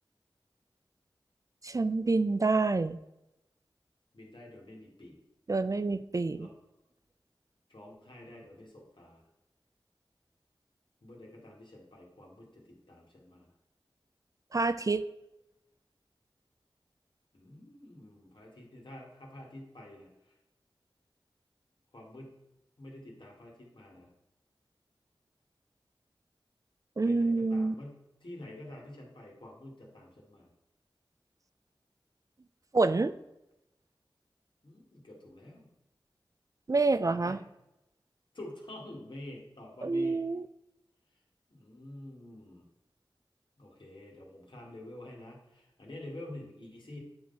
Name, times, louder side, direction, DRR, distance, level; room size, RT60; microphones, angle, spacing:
voice 1, 1.6-3.0 5.5-6.5 14.5-15.0 27.0-27.7 32.7-33.1 36.7-37.4 39.8-40.5, right 3 dB, 40° right, 13 dB, 0.3 m, -27 dB
voice 2, 4.1-5.2 6.4-6.5 7.7-9.2 11.0-13.5 17.3-20.3 21.9-22.3 22.8-24.1 27.0-30.5 34.6-35.7 37.0-37.4 38.3-40.2 41.5-42.6 43.6-47.0, left 1 dB, 65° left, -2 dB, 2.0 m, -48 dB
8.7 x 3.9 x 4.1 m, 0.89 s
wide cardioid pair, 45°, 9 cm